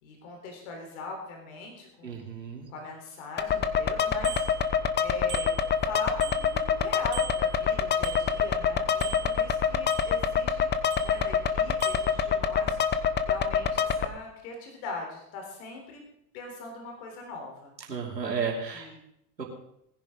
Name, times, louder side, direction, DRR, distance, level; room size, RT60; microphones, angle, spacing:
voice 1, 0.0-2.4 2.7-5.5 5.8-10.7 11.0-16.0 16.3-17.7 18.7-19.0, left 3 dB, 60° left, 2 dB, 3.8 m, -41 dB
voice 2, 2.0-2.6 17.9-18.9 19.4-19.5, right 6 dB, 90° right, 0 dB, 2.8 m, -32 dB
sound 1, 3.4-14.0, left 7 dB, 20° left, 0.9 m, -26 dB
Bicycle bell, 4.2-5.0 5.3-6.8 7.1-8.7 9.0-10.4 10.9-11.5 11.8-12.2, right 10 dB, 70° right, 4.1 m, -41 dB
19.5 x 10.5 x 3.8 m, 0.76 s
figure-of-eight pair, 85°, 48 cm